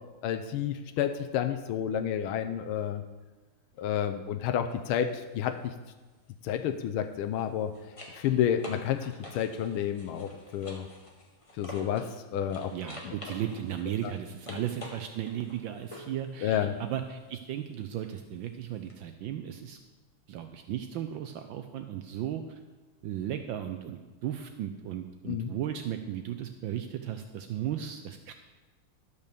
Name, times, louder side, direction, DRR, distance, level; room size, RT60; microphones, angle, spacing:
voice 1, 0.2-3.0 3.8-5.1 5.3-5.5 6.4-7.7 8.1-10.8 11.6-12.0 12.3-12.7 13.0-13.1 14.5-14.6 16.4-16.7 25.2-25.5, left 9 dB, 85° left, 7 dB, 1.5 m, -30 dB
sound 1, 4.7-4.9 7.2-12.2 12.5-16.2 18.9-19.0, left 1 dB, 20° left, 1.1 m, -47 dB
voice 2, 12.7-19.8 20.3-22.6 23.0-28.3, right 10 dB, 75° right, 7 dB, 1.3 m, -36 dB
12.0 x 5.5 x 6.8 m, 1.3 s
omnidirectional pair, 2.3 m